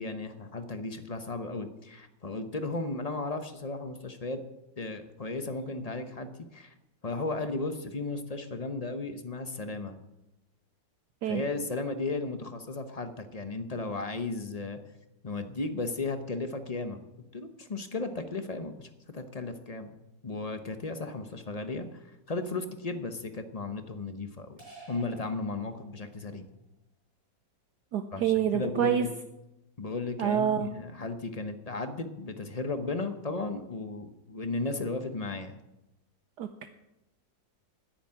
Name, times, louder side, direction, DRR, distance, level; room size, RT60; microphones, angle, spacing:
voice 1, 0.0-4.4 4.8-6.7 7.0-10.0 11.3-14.8 15.2-17.0 17.3-19.9 20.2-24.6 24.9-26.5 28.1-29.1 29.8-35.6, left 3 dB, 30° left, 8 dB, 0.7 m, -35 dB
sound 1, 24.6-26.3, right 2 dB, 45° right, 5.8 m, -50 dB
voice 2, 27.9-29.1 30.2-30.7 36.4-36.7, right 8 dB, 65° right, 8 dB, 1.3 m, -27 dB
10.5 x 10.0 x 8.8 m, 0.92 s
omnidirectional pair, 2.0 m